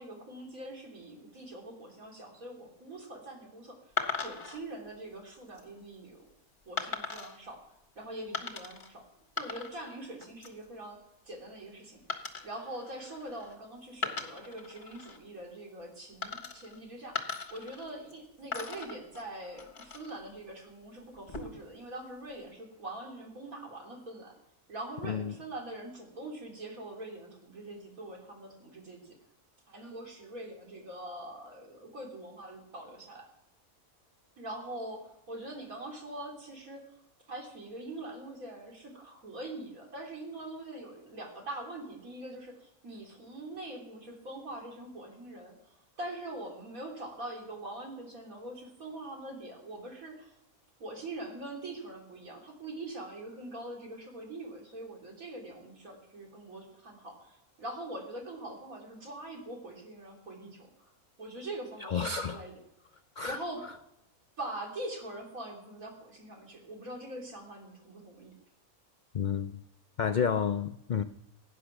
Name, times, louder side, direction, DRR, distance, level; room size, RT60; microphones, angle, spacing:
voice 1, 0.0-3.8 4.2-6.3 6.7-7.6 8.0-9.1 9.4-11.0 11.2-17.2 17.5-24.3 24.7-29.2 29.7-33.3 34.4-36.8 37.3-50.4 50.8-60.9 61.2-62.5 63.2-63.6 64.4-68.3, right 1 dB, 70° right, 0 dB, 3.6 m, -43 dB
sound 1, 4.0-4.6 5.3-5.6 6.8-7.4 8.3-8.9 9.2-9.9 10.2-10.6 12.1-13.5 13.9-15.2 16.2-16.8 17.1-18.2 18.5-20.2 21.1-21.7, left 5 dB, 35° left, 1.5 m, -38 dB
voice 2, 25.0-25.3 61.8-62.4 63.2-63.4 69.1-69.6 70.0-71.0, left 7 dB, 70° left, 10 dB, 0.4 m, -30 dB
17.0 x 9.8 x 6.0 m, 0.84 s
omnidirectional pair, 1.5 m